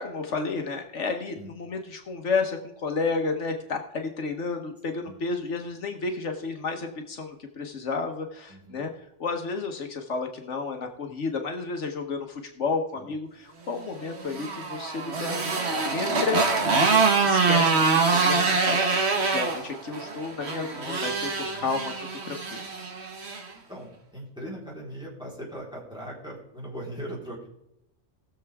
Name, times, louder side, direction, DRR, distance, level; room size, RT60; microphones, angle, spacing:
voice 1, 0.0-8.9 9.2-18.8 19.3-21.3 21.6-21.9 22.2-22.4, left 4 dB, 75° left, 4 dB, 1.4 m, -31 dB
voice 2, 5.0-5.4 8.5-8.9 12.9-13.1 21.3-21.7 23.7-27.5, right 1 dB, 5° right, -5 dB, 4.0 m, -40 dB
Motorcycle, 14.0-23.5, right 4 dB, 60° right, 1.6 m, -25 dB
19.5 x 6.9 x 3.5 m, 0.81 s
omnidirectional pair, 1.3 m